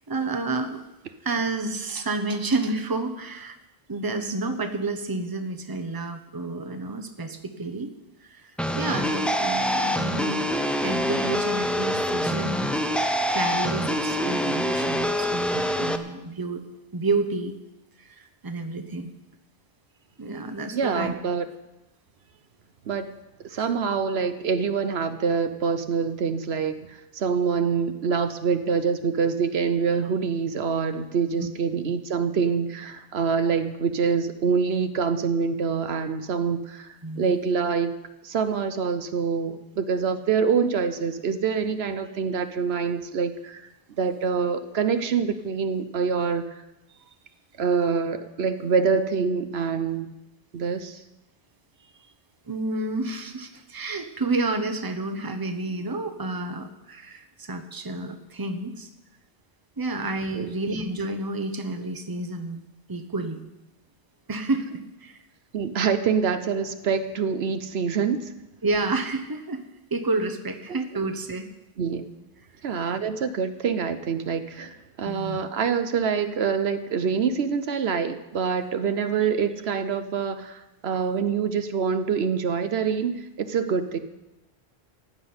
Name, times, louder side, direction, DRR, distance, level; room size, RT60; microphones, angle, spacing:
voice 1, 0.1-0.8 1.2-3.6 3.9-7.9 8.2-10.4 10.8-12.7 13.3-16.6 16.9-17.5 18.0-19.1 20.2-21.1 23.5-23.7 37.0-37.3 52.5-58.9 59.8-63.4 64.3-65.2 68.6-69.6 69.9-71.5 72.7-73.0 75.0-75.4, right 2 dB, 20° right, 7 dB, 0.9 m, -30 dB
sound 1, 8.6-16.0, equal, ahead, 0.5 m, -25 dB
voice 2, 20.7-21.4 22.9-23.1 23.4-36.9 37.2-37.9 38.2-43.6 44.0-46.6 47.6-50.1 50.5-51.0 60.3-60.5 65.5-68.3 70.7-70.8 71.8-72.1 72.6-84.0, right 6 dB, 70° right, 10 dB, 1.0 m, -25 dB
15.0 x 6.1 x 9.5 m, 0.99 s
omnidirectional pair, 1.1 m